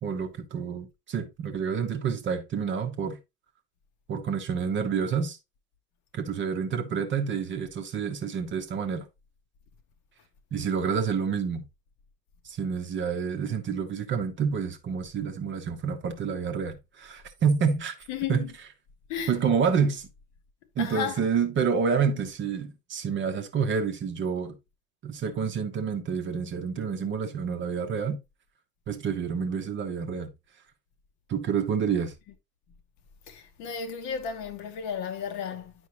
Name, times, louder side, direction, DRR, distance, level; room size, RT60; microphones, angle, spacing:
voice 1, 0.0-3.2 4.1-5.4 6.1-9.1 10.5-11.6 12.4-18.0 18.3-18.4 19.3-20.1 20.8-24.6 25.0-28.2 28.9-30.3 31.3-32.1, right 6 dB, 25° right, 1.0 m, -28 dB
voice 2, 18.1-18.5 19.1-19.3 20.8-21.3 33.3-35.7, left 7 dB, 35° left, 1.0 m, -33 dB
9.4 x 5.2 x 3.0 m
figure-of-eight pair, 85°, 48 cm